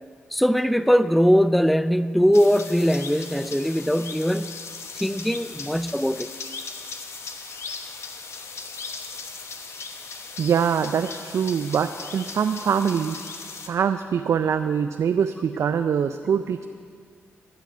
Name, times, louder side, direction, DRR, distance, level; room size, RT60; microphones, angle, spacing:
voice 1, 0.3-4.6 4.9-6.3, equal, ahead, 14 dB, 0.4 m, -21 dB
sound 1, 2.3-13.7, left 4 dB, 60° left, 1.1 m, -38 dB
voice 2, 10.4-13.2 13.7-16.7, right 7 dB, 65° right, 9 dB, 0.4 m, -23 dB
13.0 x 6.1 x 8.9 m, 2.1 s
supercardioid pair, 50°, 5 cm